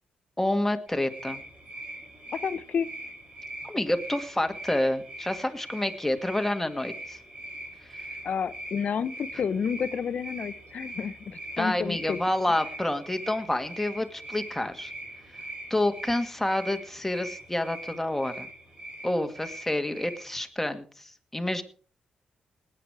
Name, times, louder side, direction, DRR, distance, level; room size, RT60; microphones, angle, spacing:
voice 1, 0.4-1.4 3.6-7.2 7.8-8.0 11.6-14.9 15.7-18.5 19.0-21.6, left 1 dB, 10° left, 7 dB, 1.9 m, -28 dB
sound 1, 0.9-20.5, right 1 dB, 40° right, 5.2 m, -42 dB
voice 2, 2.3-2.9 8.2-12.2, left 7 dB, 60° left, 16 dB, 0.8 m, -30 dB
19.0 x 9.1 x 4.8 m, 0.42 s
cardioid pair, 65°, 3 cm